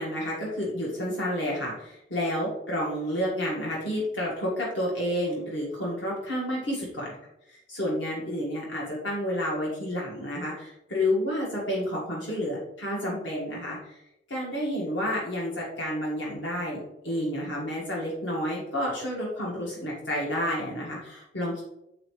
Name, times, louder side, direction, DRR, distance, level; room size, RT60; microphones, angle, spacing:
voice 1, 0.0-7.2 7.5-14.0 14.3-21.6, equal, 85° left, -4 dB, 1.8 m, -30 dB
7.7 x 4.5 x 3.2 m, 0.84 s
head